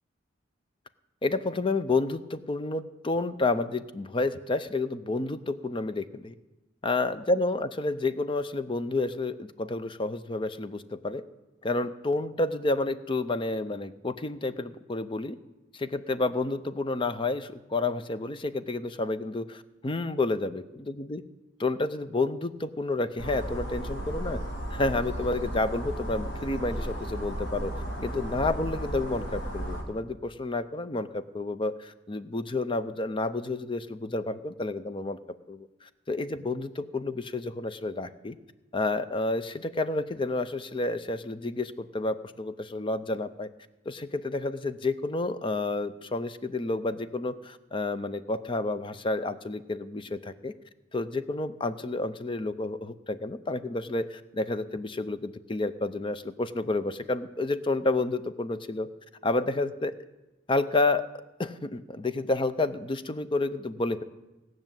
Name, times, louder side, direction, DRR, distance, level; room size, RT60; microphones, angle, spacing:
voice 1, 1.2-6.3 6.8-11.2 11.6-15.4 15.7-21.2 21.6-24.4 24.7-35.2 35.5-38.4 38.7-43.5 43.9-50.5 50.9-58.9 59.2-60.0 60.5-61.1 61.4-64.0, left 2 dB, 25° left, 12 dB, 0.5 m, -30 dB
sound 1, 23.2-29.8, equal, 80° left, 3.0 m, -34 dB
17.5 x 6.2 x 9.0 m, 1.0 s
head